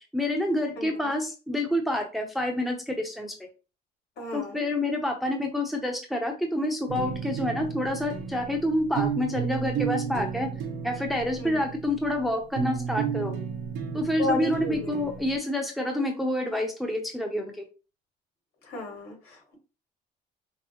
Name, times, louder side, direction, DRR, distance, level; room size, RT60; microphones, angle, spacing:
voice 1, 0.1-3.3 4.3-10.5 10.8-13.3 13.9-17.6, left 1 dB, ahead, 2 dB, 0.7 m, -28 dB
voice 2, 4.2-4.6 11.4-11.6 14.1-15.0 18.6-19.5, left 2 dB, 70° left, -1 dB, 2.1 m, -33 dB
sound 1, 6.9-15.4, right 6 dB, 80° right, 0.9 m, -32 dB
5.4 x 2.0 x 2.9 m, 0.32 s
cardioid pair, 110°, 17 cm